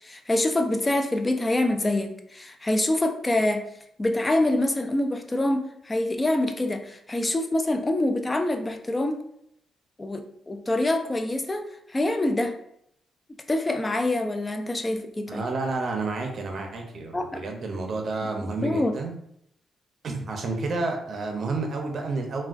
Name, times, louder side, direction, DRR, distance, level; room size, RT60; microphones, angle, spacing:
voice 1, 0.0-3.7 4.0-9.2 10.0-12.6 13.5-15.4 17.1-17.4 18.6-18.9, left 1 dB, 20° left, 6 dB, 0.3 m, -25 dB
voice 2, 15.3-19.2 20.0-22.5, right 3 dB, 50° right, 3 dB, 0.6 m, -30 dB
3.4 x 2.2 x 2.4 m, 0.72 s
cardioid pair, 100°, 0 cm